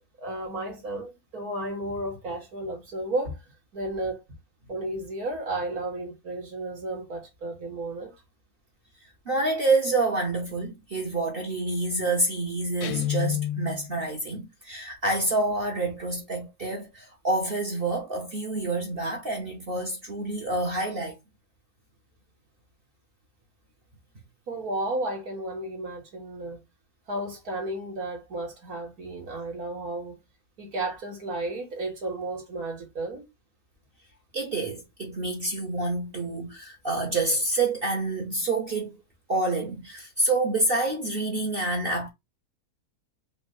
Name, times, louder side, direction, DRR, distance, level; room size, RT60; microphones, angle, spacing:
voice 1, 0.2-3.4 3.7-4.2 4.7-8.1 24.5-26.6 27.1-30.2 30.6-33.3, right 2 dB, 75° right, 2.1 m, -33 dB
voice 2, 9.3-21.1 34.3-39.0 39.3-42.1, right 2 dB, 40° right, 1.1 m, -27 dB
Guitar, 12.8-14.0, left 12 dB, 90° left, 1.1 m, -29 dB
5.1 x 2.5 x 4.0 m
omnidirectional pair, 1.6 m